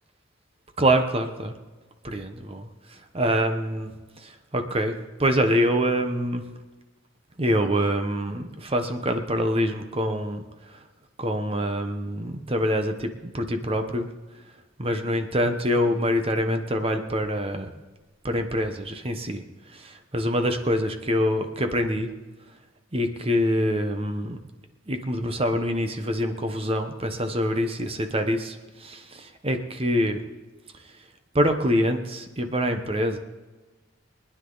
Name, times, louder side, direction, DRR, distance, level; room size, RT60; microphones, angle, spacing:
voice 1, 0.8-1.5 2.0-3.9 4.2-6.4 7.4-10.4 11.2-14.1 14.8-17.7 18.2-19.4 19.7-22.1 22.9-24.4 24.9-30.2 31.3-33.2, equal, 30° right, 6 dB, 1.1 m, -25 dB
23.5 x 10.0 x 4.1 m, 1.2 s
head